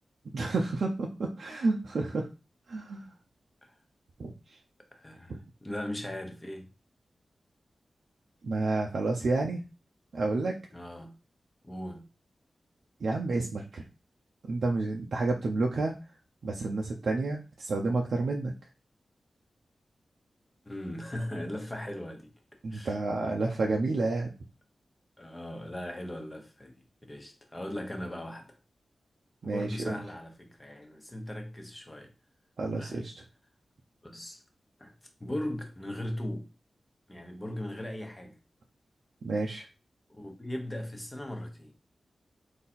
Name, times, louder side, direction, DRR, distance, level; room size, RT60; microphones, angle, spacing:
voice 1, 0.3-2.3 2.7-3.1 4.2-4.6 5.3-5.4 8.4-9.6 10.1-10.5 13.0-13.8 14.5-15.9 16.4-18.5 22.6-24.3 29.4-29.9 32.6-33.1 39.2-39.7, right 3 dB, 70° right, 0.6 m, -30 dB
voice 2, 4.9-6.7 10.7-11.2 11.6-12.1 20.6-22.3 22.7-23.0 25.2-26.8 27.1-28.6 29.4-32.1 32.8-33.0 34.0-34.4 34.8-34.9 35.2-36.5 37.1-38.4 40.1-41.7, left 1 dB, 15° left, 0.9 m, -38 dB
3.9 x 2.8 x 4.2 m
wide cardioid pair, 125°, 0 cm